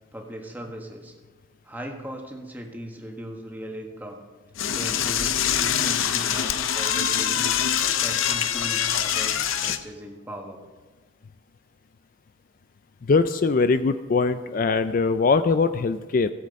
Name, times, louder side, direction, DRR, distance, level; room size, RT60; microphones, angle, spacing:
voice 1, 0.1-1.1 1.6-4.2 4.7-7.6 8.0-10.6, equal, 10° right, 1 dB, 1.4 m, -38 dB
Door / Toilet flush, 4.6-9.8, left 9 dB, 85° left, 0.6 m, -24 dB
voice 2, 13.1-16.3, left 4 dB, 45° left, 11 dB, 0.4 m, -21 dB
16.0 x 7.6 x 5.3 m, 1.3 s
head